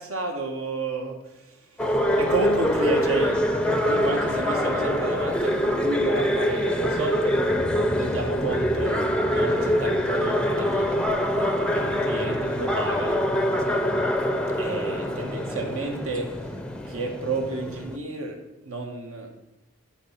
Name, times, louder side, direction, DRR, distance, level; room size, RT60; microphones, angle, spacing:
voice 1, 0.0-1.9 2.2-7.4 7.9-11.0 11.3-13.2 14.6-16.6 16.8-19.3, right 3 dB, 65° right, 3 dB, 1.8 m, -31 dB
sound 1, 1.8-18.0, equal, 5° left, 0.6 m, -24 dB
13.0 x 4.5 x 5.9 m, 0.92 s
head